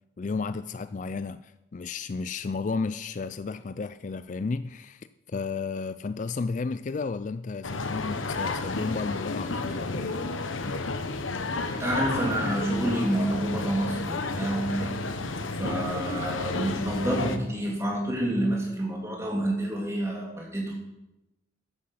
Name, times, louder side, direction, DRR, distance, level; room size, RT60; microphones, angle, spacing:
voice 1, 0.2-10.2, left 4 dB, 40° left, 0.3 m, -33 dB
sound 1, 7.6-17.4, left 3 dB, 85° left, 1.1 m, -31 dB
voice 2, 11.7-15.0 15.6-20.8, right 1 dB, 15° right, 3.1 m, -28 dB
14.0 x 10.0 x 5.7 m
head